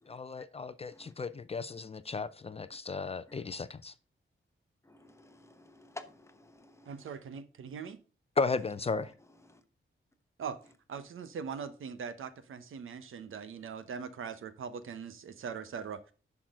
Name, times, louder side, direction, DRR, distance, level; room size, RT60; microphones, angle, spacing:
voice 1, 0.1-3.9 8.4-9.1, left 4 dB, 30° left, 0.4 m, -35 dB
voice 2, 4.8-7.1 9.5-9.6, left 2 dB, 15° left, 1.0 m, -52 dB
voice 3, 6.9-8.0 10.4-10.6 10.9-16.1, right 6 dB, 80° right, 1.0 m, -41 dB
10.5 x 6.1 x 3.7 m
wide cardioid pair, 155°, 21 cm